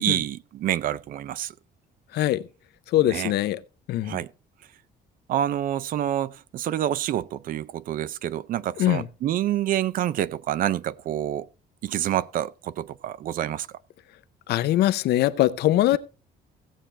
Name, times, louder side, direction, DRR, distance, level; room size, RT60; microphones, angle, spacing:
voice 1, 0.0-1.5 3.0-3.3 4.0-4.3 5.3-11.5 11.8-13.7 15.9-16.0, right 12 dB, 55° right, 0.5 m, -27 dB
voice 2, 2.9-3.6 3.9-4.2 8.8-9.0 14.5-16.0, left 14 dB, 70° left, 0.6 m, -22 dB
16.5 x 7.3 x 3.3 m
cardioid pair, 170°, 17 cm